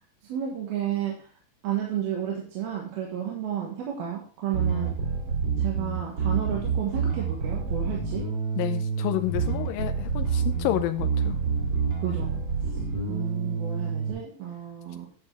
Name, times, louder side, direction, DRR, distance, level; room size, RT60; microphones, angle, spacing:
voice 1, 0.3-1.2 1.6-5.0 5.6-8.3 12.0-12.4 13.1-15.1, right 9 dB, 85° right, -1 dB, 3.3 m, -32 dB
Bass guitar, 4.5-14.1, right 5 dB, 40° right, 2.5 m, -28 dB
voice 2, 8.6-11.4, left 14 dB, 80° left, 6 dB, 2.2 m, -29 dB
10.5 x 7.3 x 3.4 m, 0.42 s
omnidirectional pair, 4.3 m